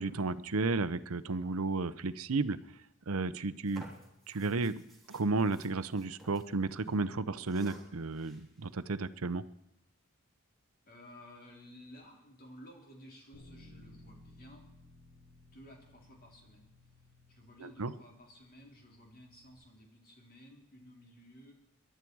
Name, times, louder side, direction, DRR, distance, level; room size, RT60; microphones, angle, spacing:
voice 1, 0.0-2.6 3.1-3.8 4.3-4.7 5.1-9.4 17.6-17.9, right 3 dB, 75° right, 14 dB, 0.7 m, -33 dB
sound 1, 3.6-6.4 6.8-6.9 7.4-8.6, right 1 dB, ahead, 3.5 m, -55 dB
voice 2, 10.9-14.7 15.5-21.5, equal, 45° left, 0 dB, 3.7 m, -55 dB
Bass guitar, 13.3-19.6, left 1 dB, 90° left, 6.2 m, -59 dB
23.0 x 11.5 x 4.7 m, 0.84 s
head